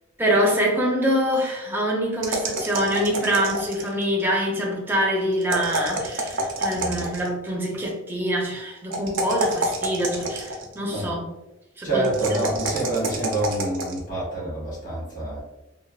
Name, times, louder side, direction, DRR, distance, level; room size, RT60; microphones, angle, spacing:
voice 1, 0.2-11.3 11.8-12.4, equal, 10° right, -2 dB, 0.5 m, -25 dB
sound 1, 2.2-4.0 5.4-7.3 8.9-10.7 12.0-14.0, right 2 dB, 70° right, 0.6 m, -28 dB
voice 2, 6.7-7.1 10.9-11.1 11.8-15.4, right 2 dB, 45° left, -7 dB, 1.4 m, -27 dB
3.2 x 2.2 x 2.3 m, 0.98 s
head